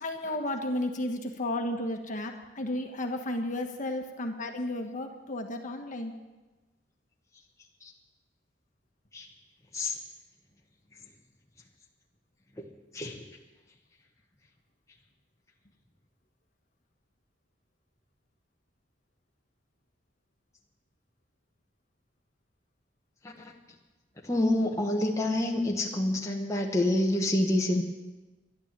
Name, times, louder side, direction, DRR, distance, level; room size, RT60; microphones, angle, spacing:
voice 1, 0.0-6.1, left 1 dB, 45° left, 4 dB, 1.3 m, -33 dB
voice 2, 12.9-13.2 23.2-23.5 24.2-27.8, left 1 dB, 15° left, 0 dB, 1.1 m, -27 dB
12.0 x 11.5 x 7.5 m, 1.2 s
head